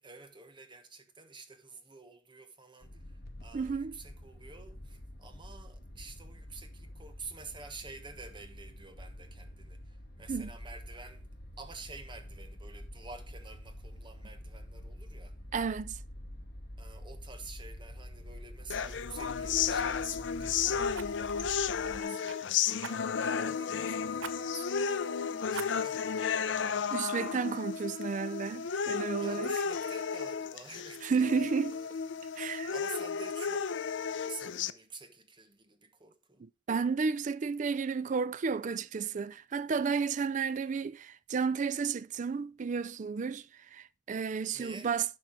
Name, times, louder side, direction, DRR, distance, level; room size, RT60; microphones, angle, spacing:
voice 1, 0.0-11.3 11.6-15.4 16.8-22.3 22.8-27.0 29.2-31.9 32.4-33.8 34.1-36.4 44.5-44.9, right 4 dB, 25° right, 1.2 m, -49 dB
sound 1, 2.8-22.0, equal, 55° left, 1.8 m, -47 dB
voice 2, 3.5-4.0 10.3-10.5 15.5-16.0 26.9-29.6 31.0-31.7 32.4-32.7 36.4-45.0, right 5 dB, 40° right, 0.4 m, -32 dB
Fire, 18.2-18.4 18.8-19.0 20.9-22.4 22.8-23.4 24.2-24.4 24.8-24.9 25.5-26.1 26.7-26.8, right 6 dB, 90° right, 0.8 m, -45 dB
sound 2, 18.7-34.7, left 6 dB, 70° left, 0.5 m, -33 dB
11.0 x 5.5 x 4.5 m
head